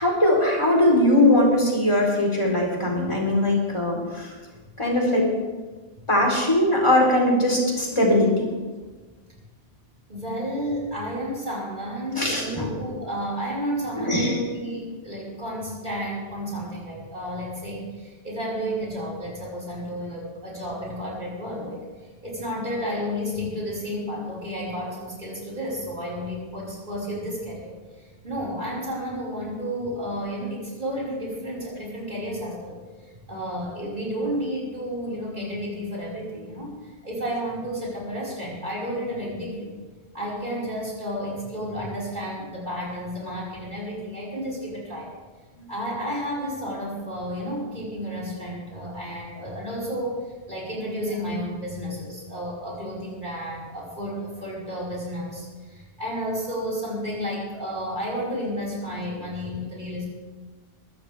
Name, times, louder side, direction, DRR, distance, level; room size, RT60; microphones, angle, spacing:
voice 1, 0.0-4.3 4.8-5.3 6.1-8.5 12.2-12.7 14.0-14.4 45.5-45.6, left 1 dB, 25° left, -2 dB, 4.4 m, -20 dB
voice 2, 10.1-21.8 22.2-32.8 33.3-39.7 40.1-45.1 45.7-60.1, equal, 50° right, -5 dB, 5.8 m, -31 dB
22.5 x 16.0 x 3.6 m, 1.3 s
omnidirectional pair, 1.1 m